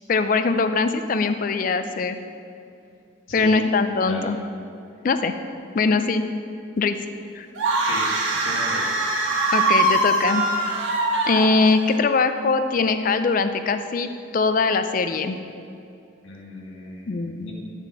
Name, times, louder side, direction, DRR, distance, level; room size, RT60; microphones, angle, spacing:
voice 1, 0.1-2.2 3.3-4.4 5.0-5.3 5.7-6.2 6.8-7.0 7.4-7.5 9.5-10.4 11.3-15.4 17.1-17.5, left 4 dB, 45° left, 9 dB, 0.4 m, -21 dB
voice 2, 3.3-3.6 4.0-4.3 7.8-9.0 16.2-17.5, left 1 dB, 80° left, -3 dB, 1.6 m, -36 dB
sound 1, 7.5-11.9, right 2 dB, 80° right, 1.2 m, -22 dB
8.1 x 4.2 x 6.7 m, 2.6 s
head